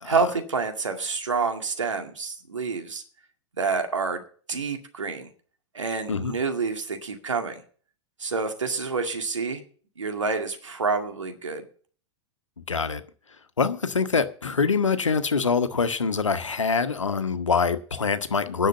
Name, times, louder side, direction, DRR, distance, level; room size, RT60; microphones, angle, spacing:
voice 1, 0.0-3.0 3.6-4.2 4.5-5.3 5.7-7.6 8.2-9.6 10.0-11.6, right 4 dB, 80° right, 2.2 m, -28 dB
voice 2, 12.7-13.0 13.6-18.7, left 5 dB, 85° left, 1.1 m, -24 dB
10.0 x 6.6 x 9.0 m
figure-of-eight pair, 95°, 16 cm